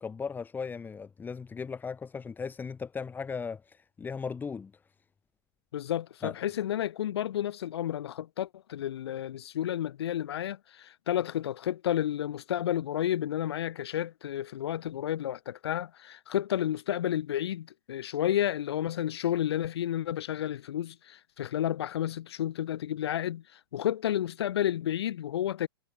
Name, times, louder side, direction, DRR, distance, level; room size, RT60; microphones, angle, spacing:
voice 1, 0.0-4.7 6.2-6.3, left 5 dB, 15° left, 6.5 m, -37 dB
voice 2, 5.7-25.7, left 11 dB, 75° left, 3.2 m, -31 dB
hypercardioid pair, 135°, 14 cm